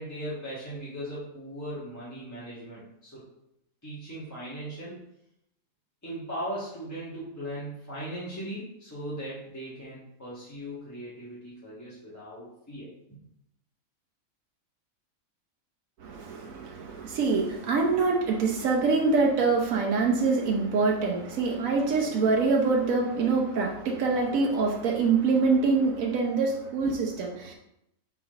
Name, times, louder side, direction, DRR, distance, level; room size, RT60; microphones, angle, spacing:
voice 1, 0.0-3.2 3.8-5.0 6.0-12.9, right 1 dB, 15° left, -10 dB, 1.4 m, -38 dB
voice 2, 16.0-27.5, right 4 dB, 80° right, 0 dB, 1.2 m, -25 dB
4.5 x 4.3 x 5.1 m, 0.80 s
omnidirectional pair, 1.4 m